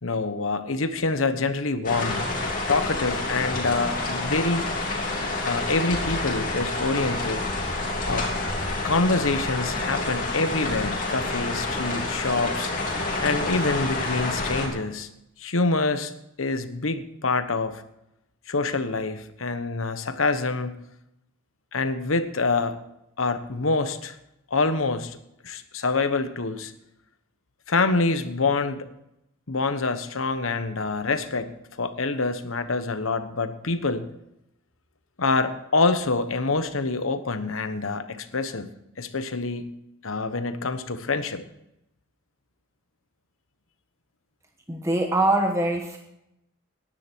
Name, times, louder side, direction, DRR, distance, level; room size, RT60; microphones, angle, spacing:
voice 1, 0.0-2.3 2.7-4.7 5.4-7.7 8.0-8.3 8.8-12.7 13.2-15.1 15.4-16.1 16.4-17.8 18.5-20.8 21.7-22.8 23.2-24.2 24.5-25.2 25.4-26.7 27.7-28.9 29.5-31.5 31.8-34.1 35.2-38.7 39.0-39.7 40.0-41.4, left 3 dB, 85° left, 10 dB, 1.1 m, -26 dB
sound 1, 1.8-14.7, left 2 dB, 40° left, 3.1 m, -28 dB
voice 2, 44.7-46.0, right 1 dB, 15° right, 3 dB, 1.1 m, -23 dB
18.5 x 10.5 x 4.6 m, 0.83 s
head